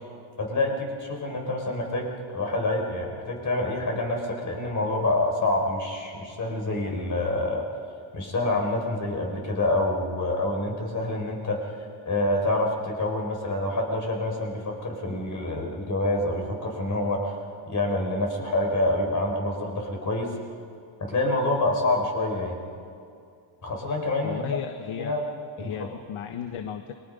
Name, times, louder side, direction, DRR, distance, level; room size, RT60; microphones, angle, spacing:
voice 1, 0.4-7.6 8.1-11.6 12.0-17.4 17.7-20.3 21.0-22.6 23.6-24.5 24.9-25.2 25.6-25.9, left 2 dB, 35° left, 1 dB, 5.0 m, -27 dB
voice 2, 24.2-25.2 25.6-26.9, left 9 dB, 75° left, 6 dB, 1.3 m, -35 dB
29.5 x 23.5 x 5.5 m, 2.5 s
cardioid pair, 155°, 49 cm